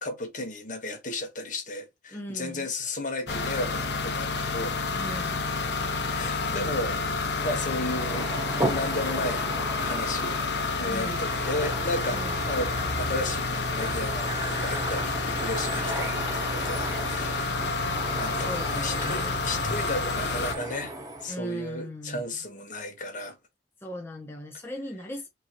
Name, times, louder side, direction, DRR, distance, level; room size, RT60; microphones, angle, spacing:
voice 1, 0.0-5.0 6.1-8.3 8.7-9.4 9.8-10.4 10.8-17.5 18.1-20.9 21.2-23.3, left 2 dB, 45° left, 1.2 m, -34 dB
voice 2, 2.1-2.7 4.9-5.4 10.8-11.3 12.1-12.4 18.4-19.4 21.3-22.2 23.8-25.3, equal, 15° left, 0.8 m, -38 dB
sound 1, 3.3-20.5, left 3 dB, 70° left, 0.8 m, -29 dB
sound 2, 7.4-21.4, right 1 dB, 20° right, 1.2 m, -36 dB
5.2 x 2.9 x 2.9 m
head